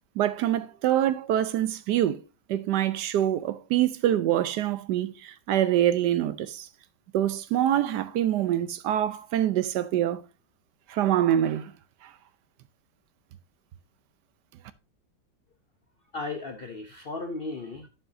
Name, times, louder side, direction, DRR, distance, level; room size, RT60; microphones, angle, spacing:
voice 1, 0.2-2.2 2.5-6.7 7.1-10.2 10.9-11.7 12.0-12.1, right 11 dB, 70° right, 1.1 m, -25 dB
voice 2, 16.1-17.9, left 3 dB, 55° left, 0.6 m, -35 dB
11.5 x 5.8 x 2.6 m
omnidirectional pair, 2.0 m